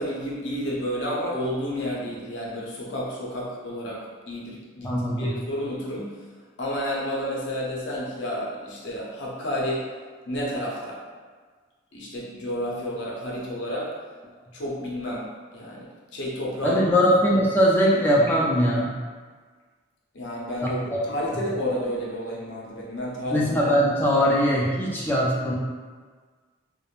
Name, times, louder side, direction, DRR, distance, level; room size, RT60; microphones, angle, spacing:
voice 1, 0.0-6.2 6.6-9.9 10.2-11.0 11.9-13.9 14.5-15.3 15.5-15.9 16.1-16.8 17.3-17.4 20.1-23.4 24.3-24.4, equal, 60° left, -5 dB, 0.6 m, -31 dB
voice 2, 4.8-5.3 16.6-18.9 20.6-21.0 21.3-21.4 23.3-25.5, equal, 10° left, -5 dB, 0.3 m, -21 dB
3.0 x 2.0 x 2.3 m, 1.5 s
head